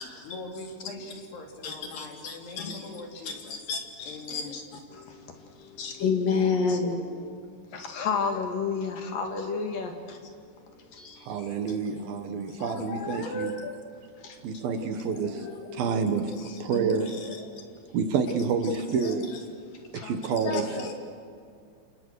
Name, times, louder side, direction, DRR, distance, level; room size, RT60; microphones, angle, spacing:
voice 1, 0.2-3.6 4.0-4.6, left 2 dB, 75° left, 2 dB, 5.0 m, -42 dB
voice 2, 1.6-2.8 3.2-4.6 4.9-11.8 12.5-13.8 14.2-14.4 14.7-14.8 15.1-16.1 16.4-16.7 17.0-18.0 18.6-18.8 19.0-19.2 19.7-20.9, left 5 dB, 55° left, 4 dB, 3.7 m, -33 dB
voice 3, 11.2-13.5 14.4-15.5 15.7-17.1 17.9-19.3 19.9-20.7, right 5 dB, 65° right, 7 dB, 3.1 m, -28 dB
28.5 x 28.0 x 6.5 m, 2.4 s
omnidirectional pair, 4.8 m